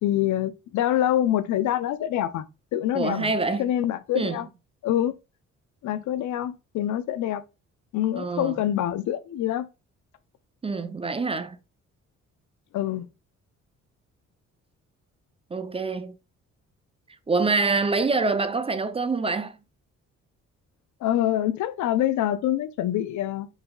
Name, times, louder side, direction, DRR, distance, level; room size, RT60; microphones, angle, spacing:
voice 1, 0.0-2.5 2.7-3.3 3.6-4.5 4.8-5.1 5.8-7.4 7.9-9.7 12.7-13.0 21.0-23.5, left 12 dB, 75° left, 0.5 m, -25 dB
voice 2, 2.9-3.7 4.1-4.4 8.2-8.6 10.6-11.6 15.5-16.2 17.3-19.6, right 3 dB, 20° right, 0.4 m, -25 dB
3.9 x 3.9 x 2.2 m
cardioid pair, 90°, 30 cm